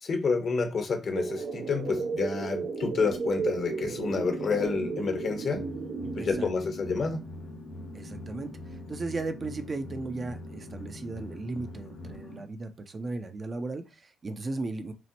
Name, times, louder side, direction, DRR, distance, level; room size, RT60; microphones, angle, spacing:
voice 1, 0.0-5.7 6.1-7.2, left 4 dB, 50° left, 1.1 m, -29 dB
sound 1, 1.1-6.4, right 5 dB, 75° right, 0.7 m, -34 dB
sound 2, 3.4-12.5, left 1 dB, 80° left, 1.2 m, -45 dB
sound 3, 5.5-12.2, left 1 dB, 25° left, 0.7 m, -45 dB
voice 2, 7.9-8.5 8.9-14.9, right 3 dB, 35° right, 0.6 m, -36 dB
6.0 x 2.0 x 2.9 m
cardioid pair, 90°, 0 cm